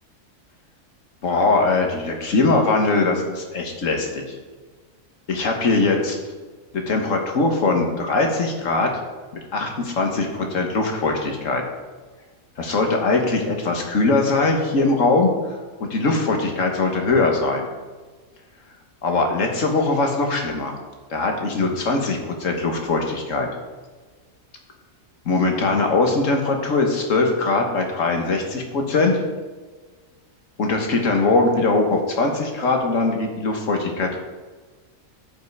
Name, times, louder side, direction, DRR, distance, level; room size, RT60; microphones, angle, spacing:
voice 1, 1.2-4.2 5.3-6.2 6.7-8.9 9.5-11.6 12.6-15.3 15.8-17.7 19.0-20.8 21.1-23.5 25.3-29.1 30.6-34.2, left 3 dB, 70° left, 2 dB, 1.7 m, -21 dB
13.0 x 5.5 x 4.7 m, 1.4 s
omnidirectional pair, 1.4 m